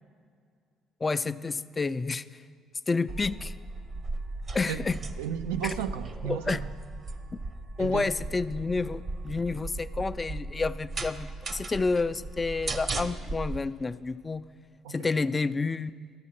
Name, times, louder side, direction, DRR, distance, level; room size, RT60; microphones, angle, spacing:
voice 1, 1.0-2.2 2.9-3.5 4.5-5.0 6.2-6.6 7.3-7.4 7.8-14.4 14.9-15.9, left 3 dB, 30° left, 14 dB, 0.3 m, -29 dB
sound 1, 3.1-13.6, right 2 dB, 50° right, 0.8 m, -37 dB
voice 2, 5.2-6.7 7.8-8.1 14.8-15.0, right 9 dB, 90° right, 8 dB, 0.4 m, -33 dB
13.5 x 6.3 x 5.8 m, 2.1 s
hypercardioid pair, 60°, 0 cm